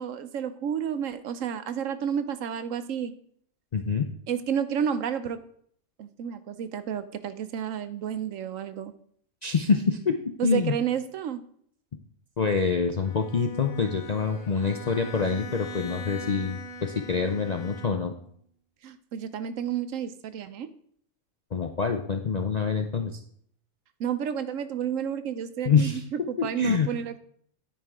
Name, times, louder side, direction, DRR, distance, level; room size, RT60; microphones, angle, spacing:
voice 1, 0.0-3.1 4.3-5.4 6.0-8.9 10.4-11.4 18.8-20.7 24.0-27.2, right 8 dB, 70° right, 12 dB, 1.0 m, -31 dB
voice 2, 3.7-4.1 9.4-10.8 12.4-18.1 21.5-23.2 25.7-26.0 26.4-26.9, left 5 dB, 50° left, 5 dB, 0.5 m, -26 dB
Bowed string instrument, 13.0-18.3, equal, 85° left, 1.7 m, -41 dB
9.4 x 8.8 x 3.6 m, 0.63 s
omnidirectional pair, 1.5 m